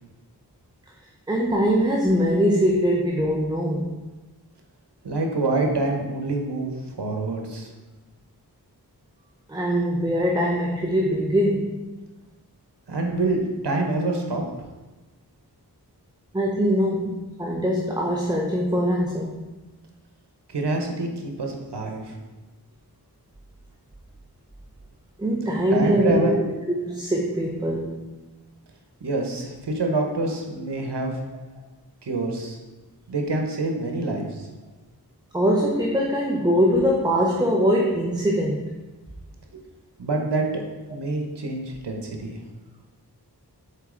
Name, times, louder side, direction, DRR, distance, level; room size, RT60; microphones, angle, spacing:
voice 1, 1.3-3.9 9.5-11.8 16.3-19.4 25.2-26.4 26.9-28.1 35.3-38.7, equal, 10° right, -1 dB, 0.7 m, -22 dB
voice 2, 5.0-7.7 12.9-14.4 20.5-22.2 25.7-26.3 29.0-31.2 32.0-32.6 33.1-34.5 39.5-39.6 40.0-40.6 40.9-42.4, right 2 dB, 85° right, 2 dB, 1.1 m, -26 dB
6.6 x 4.7 x 3.8 m, 1.1 s
wide cardioid pair, 60°, 40 cm